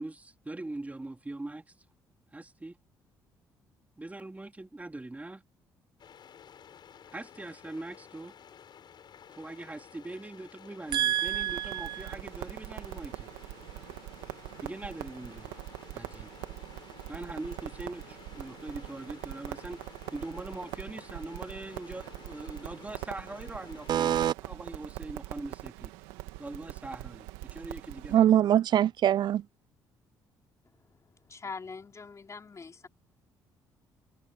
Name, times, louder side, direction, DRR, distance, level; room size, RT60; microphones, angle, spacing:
voice 1, 0.0-1.6 2.3-2.8 4.0-5.4 7.1-8.3 9.3-13.3 14.6-15.6 15.9-16.3 17.1-19.8 20.1-25.9 26.4-28.3, right 2 dB, 15° right, 3.8 m, -42 dB
sound 1, 6.0-24.3, left 8 dB, 60° left, 7.1 m, -53 dB
voice 2, 10.9-12.0 23.9-24.3 28.1-29.4, right 11 dB, 60° right, 0.4 m, -24 dB
Crackle, 10.9-28.2, right 19 dB, 85° right, 2.1 m, -43 dB
voice 3, 31.3-32.9, left 5 dB, 35° left, 3.5 m, -42 dB
supercardioid pair, 55°, 9 cm